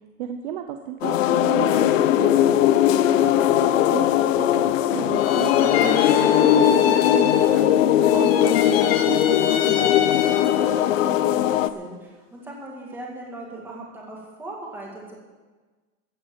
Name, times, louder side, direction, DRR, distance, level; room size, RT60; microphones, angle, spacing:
voice 1, 0.2-2.7 3.2-7.6 7.9-10.1, right 10 dB, 40° right, 6 dB, 0.8 m, -33 dB
sound 1, 1.0-11.7, left 11 dB, 80° left, 0.9 m, -19 dB
voice 2, 3.1-3.5 10.6-15.1, right 2 dB, 5° right, -3 dB, 2.2 m, -39 dB
sound 2, 5.1-7.8 8.0-10.8, left 8 dB, 50° left, 1.2 m, -27 dB
14.5 x 8.8 x 7.3 m, 1.3 s
supercardioid pair, 180°, 38 cm